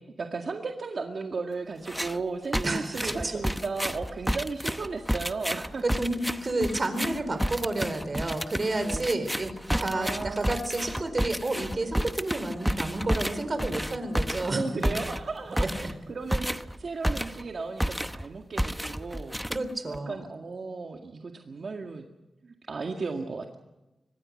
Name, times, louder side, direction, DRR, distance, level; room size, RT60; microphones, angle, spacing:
voice 1, 0.2-5.8 8.8-9.0 9.7-10.5 14.3-19.4 19.9-22.0 22.4-23.5, right 4 dB, 55° right, 3 dB, 2.0 m, -35 dB
sound 1, 1.9-2.2 2.5-17.5 17.8-18.3 18.6-20.0, equal, ahead, 0.9 m, -31 dB
voice 2, 2.6-3.3 5.8-9.5 9.8-14.6 14.9-15.0 15.5-15.9 19.5-20.3, right 2 dB, 35° right, 9 dB, 4.2 m, -30 dB
25.0 x 20.5 x 6.5 m, 1.0 s
wide cardioid pair, 90°, 0 cm